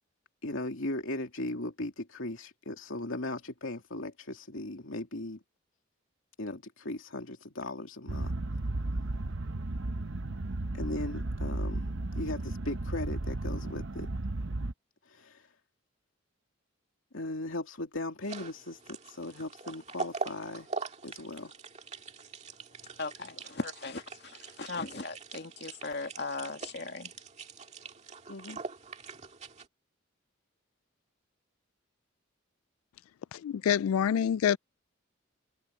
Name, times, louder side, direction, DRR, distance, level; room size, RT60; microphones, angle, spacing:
voice 1, 0.4-5.4 6.4-8.3 10.7-14.1 15.1-15.5 17.1-20.7 21.0-21.5 28.3-28.6, left 2 dB, 75° left, 2.6 m, -38 dB
sound 1, 8.1-14.7, right 2 dB, 65° right, 0.9 m, -34 dB
sound 2, 18.2-29.7, right 4 dB, 35° right, 2.0 m, -43 dB
voice 2, 23.0-27.1, left 3 dB, 50° left, 2.2 m, -38 dB
voice 3, 33.3-34.6, left 8 dB, 90° left, 0.3 m, -26 dB
head